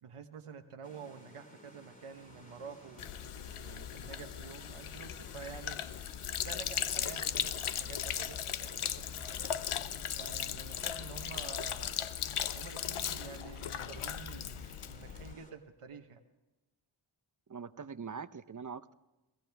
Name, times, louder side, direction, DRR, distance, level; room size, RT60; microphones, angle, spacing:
voice 1, 0.0-3.1 3.5-5.8 6.4-9.5 10.2-12.0 12.5-16.2, right 6 dB, 90° right, 4 dB, 1.3 m, -49 dB
sound 1, 0.8-15.5, equal, 15° left, 3.4 m, -57 dB
sound 2, 2.0-15.9, left 1 dB, 50° left, 7.5 m, -60 dB
Sink (filling or washing), 3.0-15.3, left 9 dB, 75° left, 0.8 m, -37 dB
voice 2, 17.5-18.9, right 6 dB, 35° right, 13 dB, 0.9 m, -43 dB
22.0 x 17.0 x 3.5 m, 1.0 s
cardioid pair, 50°, 50 cm